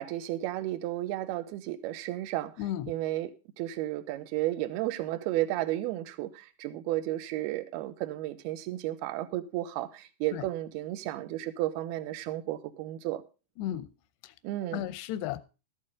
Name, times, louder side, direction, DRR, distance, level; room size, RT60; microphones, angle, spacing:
voice 1, 0.0-3.3 3.6-13.2 14.4-14.9, right 15 dB, 75° right, 2.5 m, -33 dB
voice 2, 2.6-2.9 10.3-10.5 13.6-13.9 14.7-15.4, left 12 dB, 80° left, 2.5 m, -33 dB
13.0 x 11.5 x 3.6 m
omnidirectional pair, 5.5 m